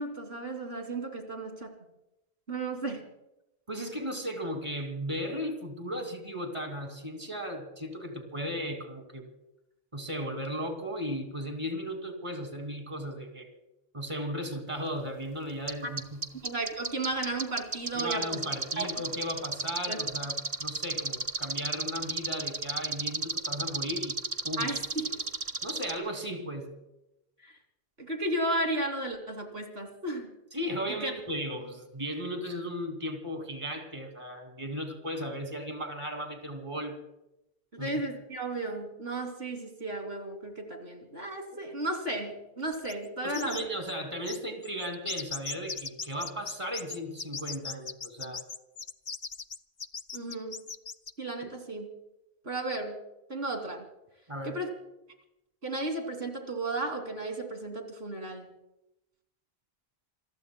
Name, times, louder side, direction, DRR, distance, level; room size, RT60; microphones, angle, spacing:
voice 1, 0.0-1.7 2.5-3.0 16.4-18.4 18.8-18.9 19.9-20.0 24.6-25.2 27.4-27.6 28.0-30.3 31.0-31.1 37.7-43.6 50.1-50.6 51.2-51.9 52.4-53.0 53.3-53.8 54.4-54.7 55.6-58.5, right 2 dB, 80° right, 4 dB, 3.2 m, -34 dB
voice 2, 3.7-9.3 9.9-13.5 13.9-16.2 17.9-24.2 24.4-24.7 25.6-26.7 30.5-37.0 37.8-38.0 43.2-48.4 54.3-54.6, equal, 30° right, 4 dB, 2.6 m, -36 dB
sound 1, 15.7-15.8 16.0-25.9, right 3 dB, 55° right, 1.7 m, -31 dB
sound 2, 42.7-43.1 43.3-43.6 43.9-44.0 44.3-51.1, left 5 dB, 45° left, 1.0 m, -38 dB
28.0 x 21.5 x 2.3 m, 0.88 s
omnidirectional pair, 1.0 m